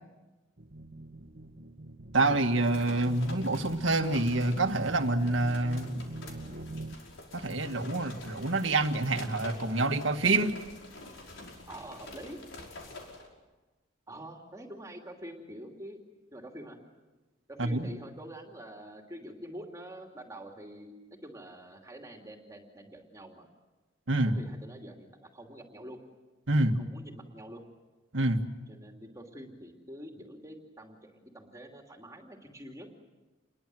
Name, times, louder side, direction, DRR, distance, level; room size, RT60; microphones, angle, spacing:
sound 1, 0.6-7.0, right 1 dB, 60° right, 1.6 m, -44 dB
voice 1, 2.1-5.9 7.3-10.6 17.6-17.9 24.1-24.3 26.5-26.7 28.1-28.4, right 2 dB, 75° right, 6 dB, 1.9 m, -27 dB
sound 2, 2.5-13.3, left 2 dB, 75° left, 5.4 m, -47 dB
voice 2, 11.7-12.4 14.1-16.0 16.3-16.8 17.5-23.5 24.3-26.0 26.8-27.6 28.7-32.9, right 1 dB, 15° right, 2 dB, 2.8 m, -46 dB
28.5 x 22.0 x 7.8 m, 1.2 s
head